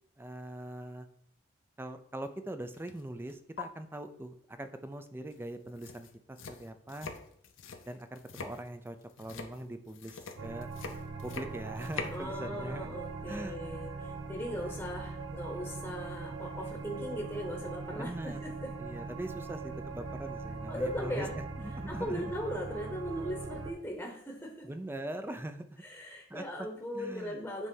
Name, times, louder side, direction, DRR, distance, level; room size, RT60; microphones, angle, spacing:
voice 1, 0.2-1.1 1.8-7.1 7.9-10.7 11.2-13.6 14.6-14.8 18.0-18.4 18.8-21.3 21.6-22.3 24.6-25.8 26.3-26.7 26.9-27.4, right 1 dB, 10° right, 9 dB, 0.4 m, -42 dB
sound 1, 2.7-3.0 3.3-3.6 5.3-5.4 5.7-12.2, left 5 dB, 80° left, 0.7 m, -44 dB
sound 2, 10.4-23.7, right 4 dB, 90° right, 1.0 m, -41 dB
voice 2, 12.1-18.7 20.7-21.3 21.9-24.7 25.8-27.7, equal, 10° left, 0 dB, 1.0 m, -39 dB
8.1 x 3.3 x 5.4 m, 0.68 s
head